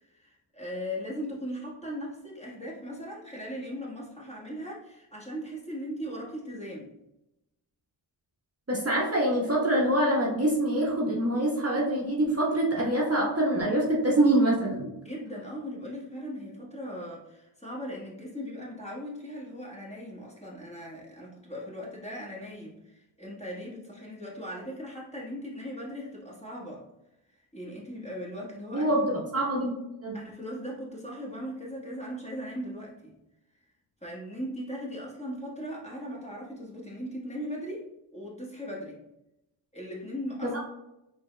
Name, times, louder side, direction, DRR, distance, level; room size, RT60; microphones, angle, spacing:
voice 1, 0.0-6.9 15.0-26.8 27.5-28.9 30.1-33.1 34.0-39.0 39.7-40.6, equal, 15° left, -5 dB, 1.4 m, -38 dB
voice 2, 8.7-14.9 28.7-29.7 30.0-30.2 40.4-40.6, right 1 dB, 30° right, -4 dB, 1.2 m, -25 dB
4.5 x 2.8 x 2.2 m, 0.89 s
cardioid pair, 45°, 50 cm